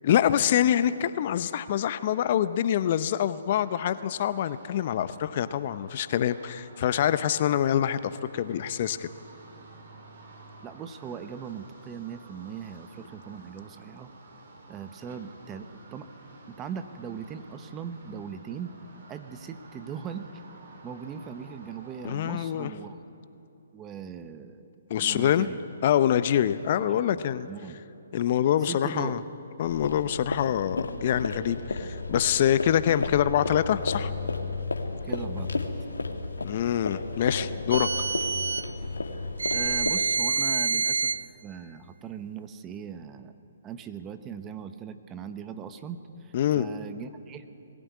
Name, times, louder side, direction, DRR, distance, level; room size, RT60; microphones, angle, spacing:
voice 1, 0.0-9.1 22.0-22.7 24.9-25.5 25.8-27.5 28.1-29.2 29.6-34.1 36.4-37.9 46.3-46.7, left 10 dB, 45° left, 14 dB, 0.8 m, -25 dB
sound 1, 3.5-22.7, right 2 dB, 60° right, 5.1 m, -51 dB
voice 2, 10.6-14.1 14.7-16.1 16.5-18.7 19.1-20.4 20.8-23.0 23.7-24.7 25.0-25.6 26.9-27.8 28.6-29.2 35.0-35.6 39.5-41.2 41.4-43.3 43.6-47.5, right 7 dB, 20° right, 9 dB, 1.1 m, -39 dB
sound 2, 29.6-39.9, left 3 dB, 85° left, 2.1 m, -33 dB
sound 3, 37.7-38.7 39.4-41.2, right 4 dB, 80° right, 1.0 m, -27 dB
21.5 x 16.0 x 9.6 m, 2.8 s
figure-of-eight pair, 135°, 0 cm